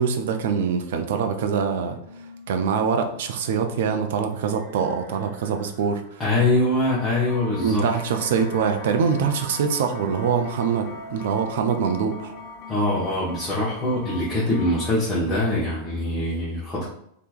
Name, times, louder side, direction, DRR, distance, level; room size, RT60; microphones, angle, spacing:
voice 1, 0.0-6.2 7.6-12.3, right 6 dB, 55° right, 6 dB, 0.4 m, -24 dB
sound 1, 1.4-13.3, left 1 dB, 85° left, 1.5 m, -45 dB
voice 2, 6.2-7.8 12.7-16.9, left 1 dB, 15° left, -9 dB, 1.0 m, -23 dB
sound 2, 6.8-14.9, left 3 dB, 35° left, 0.5 m, -43 dB
3.4 x 2.8 x 2.3 m, 0.73 s
figure-of-eight pair, 90°, 0 cm